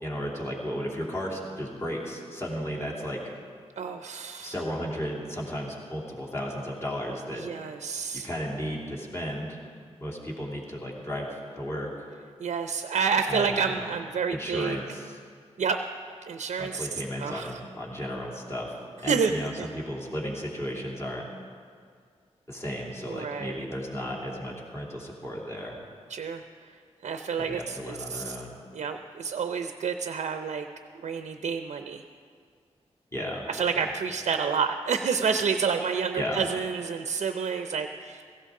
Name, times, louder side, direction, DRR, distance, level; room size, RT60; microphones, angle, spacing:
voice 1, 0.0-3.2 4.4-7.4 8.1-9.6 10.0-11.9 13.3-13.9 14.3-15.2 16.6-21.2 22.5-25.8 27.4-28.6 33.1-33.9 36.2-36.5, equal, 20° left, -3 dB, 3.0 m, -34 dB
voice 2, 3.8-4.5 7.4-8.3 12.4-14.8 15.6-15.8 16.3-17.5 19.1-19.3 19.6-19.7 23.1-23.6 26.1-26.4 27.0-28.4 28.7-30.7 31.0-32.0 33.5-38.2, right 6 dB, 85° right, 7 dB, 0.6 m, -29 dB
16.5 x 15.5 x 3.7 m, 2.1 s
wide cardioid pair, 85°, 12 cm